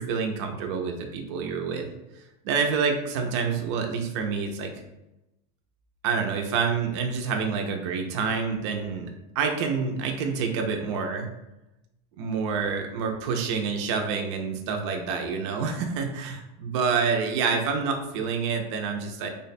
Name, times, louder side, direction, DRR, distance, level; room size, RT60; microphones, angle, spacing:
voice 1, 0.0-1.9 2.4-4.7 6.0-9.1 9.4-11.3 12.2-19.3, right 5 dB, 45° right, 3 dB, 0.4 m, -27 dB
3.4 x 2.2 x 4.0 m, 0.92 s
supercardioid pair, 180°, 21 cm